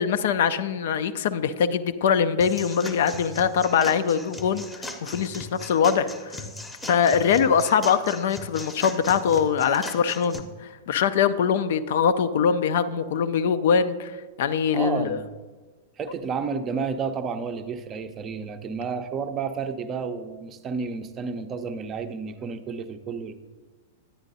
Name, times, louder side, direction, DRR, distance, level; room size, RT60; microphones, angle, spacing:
voice 1, 0.0-6.4 6.9-14.1 14.4-15.2, left 7 dB, 55° left, 12 dB, 0.4 m, -23 dB
sound 1, 2.4-10.4, left 2 dB, 10° left, 0.8 m, -38 dB
voice 2, 14.7-15.3 16.0-23.4, right 5 dB, 25° right, 9 dB, 0.5 m, -31 dB
10.0 x 9.6 x 2.7 m, 1.3 s
figure-of-eight pair, 95°, 0 cm